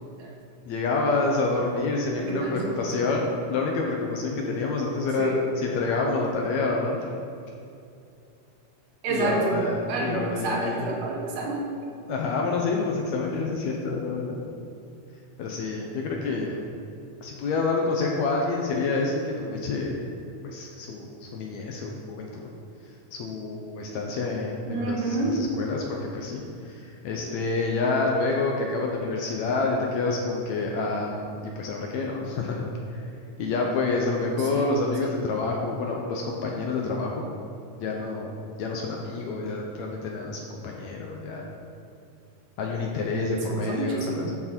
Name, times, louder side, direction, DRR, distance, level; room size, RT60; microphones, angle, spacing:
voice 1, 0.7-7.0 9.1-10.9 12.1-14.4 15.4-16.6 17.2-20.0 20.4-22.5 23.1-33.0 33.4-37.3 37.7-38.3 38.6-41.4 42.6-44.3, left 3 dB, 75° left, 0 dB, 1.8 m, -28 dB
voice 2, 2.1-2.8 5.2-5.4 9.0-9.6 9.9-11.9 24.7-25.4 34.5-34.6 43.6-44.3, right 2 dB, 75° right, -2 dB, 2.7 m, -29 dB
12.0 x 4.5 x 4.4 m, 2.5 s
omnidirectional pair, 3.8 m